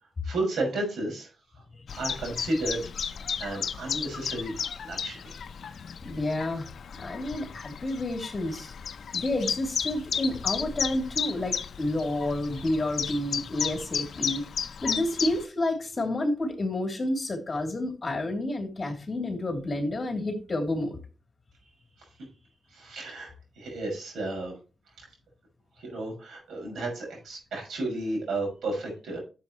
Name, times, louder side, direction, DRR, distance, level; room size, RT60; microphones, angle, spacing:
voice 1, 0.2-1.3 2.0-2.8 3.4-5.3 22.7-24.5 25.0-25.1 25.8-29.2, right 2 dB, 85° right, 0 dB, 6.0 m, -32 dB
Chirp tweet, 1.9-15.4, left 7 dB, 70° left, 0.6 m, -34 dB
voice 2, 6.0-6.7 7.0-8.7 9.1-14.4 14.8-21.0, left 1 dB, 35° left, 2 dB, 3.1 m, -30 dB
12.5 x 7.5 x 3.1 m, 0.33 s
cardioid pair, 90°, 0 cm